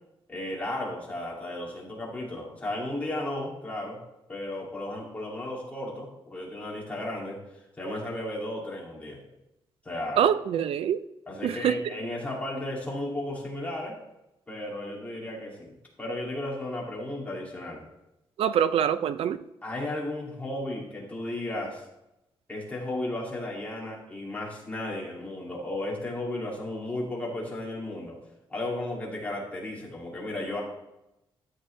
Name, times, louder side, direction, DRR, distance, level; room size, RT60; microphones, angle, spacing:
voice 1, 0.3-4.0 4.3-7.4 7.8-9.2 9.8-10.3 11.3-14.0 14.5-17.8 19.6-21.8 22.5-28.2 28.5-30.6, left 1 dB, 15° left, -3 dB, 2.5 m, -34 dB
voice 2, 10.2-11.0 11.4-11.8 18.4-19.4, right 9 dB, 80° right, 13 dB, 0.4 m, -24 dB
13.0 x 7.7 x 3.3 m, 0.91 s
wide cardioid pair, 160°, 10 cm